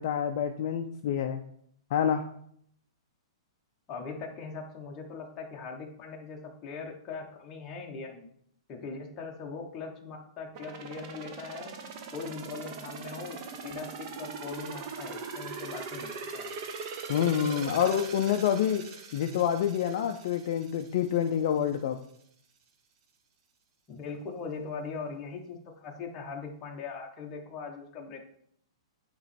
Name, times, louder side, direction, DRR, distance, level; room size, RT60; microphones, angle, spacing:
voice 1, 0.0-1.4 1.9-2.2 17.1-18.8 19.1-22.0, left 9 dB, 45° left, 6 dB, 0.4 m, -27 dB
voice 2, 3.9-8.3 8.7-11.8 12.1-16.5 23.9-28.2, left 4 dB, 20° left, 0 dB, 1.0 m, -40 dB
sound 1, 10.5-21.3 21.7-21.8, right 5 dB, 30° right, 0.7 m, -41 dB
8.8 x 3.0 x 4.2 m, 0.67 s
hypercardioid pair, 170°, 3 cm